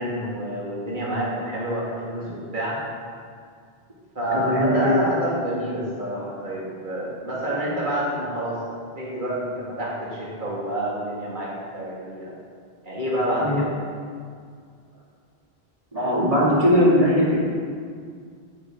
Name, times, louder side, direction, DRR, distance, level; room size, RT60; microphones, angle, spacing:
voice 1, 0.0-2.8 4.2-8.6 9.0-12.3 12.8-13.8, right 1 dB, 50° right, -6 dB, 2.3 m, -28 dB
voice 2, 4.3-4.9 13.4-13.6 15.9-17.4, equal, 35° right, -7 dB, 2.5 m, -19 dB
9.6 x 9.1 x 3.8 m, 2.1 s
omnidirectional pair, 1.0 m